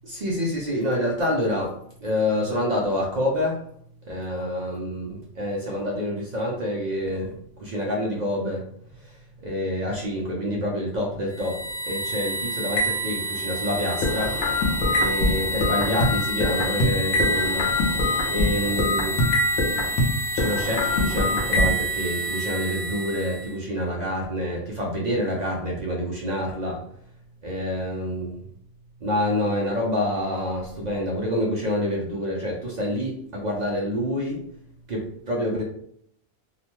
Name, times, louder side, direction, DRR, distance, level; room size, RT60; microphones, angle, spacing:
voice 1, 0.0-3.6 4.1-7.3 7.6-8.6 9.4-14.4 15.0-17.7 18.3-19.2 20.3-26.8 27.4-28.4 29.0-34.4 34.9-35.6, left 1 dB, 55° right, -2 dB, 0.5 m, -27 dB
sound 1, 11.4-23.5, equal, 65° left, 0.9 m, -27 dB
sound 2, 14.0-16.9 17.2-20.1 20.4-21.7, left 2 dB, 90° left, 1.0 m, -24 dB
2.9 x 2.0 x 2.9 m, 0.66 s
omnidirectional pair, 1.3 m